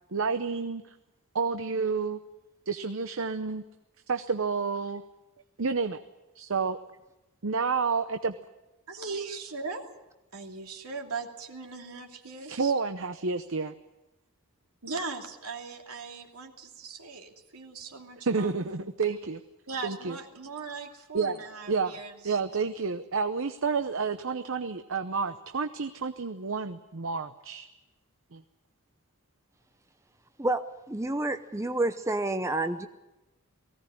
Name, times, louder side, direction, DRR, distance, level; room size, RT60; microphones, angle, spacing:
voice 1, 0.1-0.8 1.3-2.2 2.7-3.6 4.1-5.0 5.6-6.0 6.3-6.8 7.4-8.4 12.5-13.7 18.3-19.4 19.8-20.2 21.1-21.4 21.7-22.0 22.2-27.7 28.3-28.4, right 5 dB, 60° right, 8 dB, 0.8 m, -29 dB
voice 2, 8.9-9.8 10.3-12.7 14.8-18.9 19.7-22.4, right 4 dB, 80° right, 2 dB, 2.8 m, -39 dB
voice 3, 30.4-32.9, right 2 dB, 15° right, 8 dB, 0.7 m, -29 dB
19.0 x 16.5 x 10.0 m, 0.98 s
head